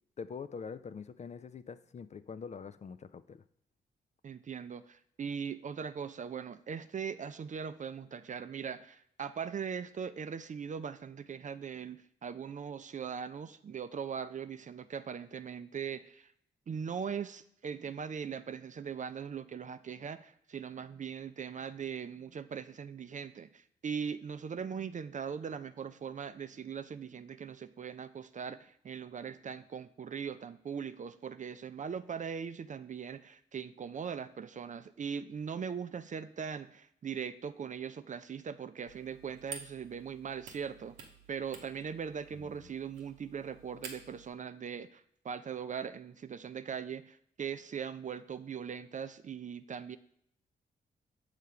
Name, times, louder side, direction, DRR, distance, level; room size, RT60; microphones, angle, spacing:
voice 1, 0.2-3.4 42.4-42.5, left 6 dB, 35° left, 13 dB, 0.4 m, -44 dB
voice 2, 4.2-16.3 16.7-50.0, right 7 dB, 40° right, 12 dB, 0.4 m, -40 dB
sound 1, 38.9-44.3, right 5 dB, 80° right, 0.8 m, -51 dB
6.6 x 3.2 x 4.8 m, 0.68 s
hypercardioid pair, 40°, 20 cm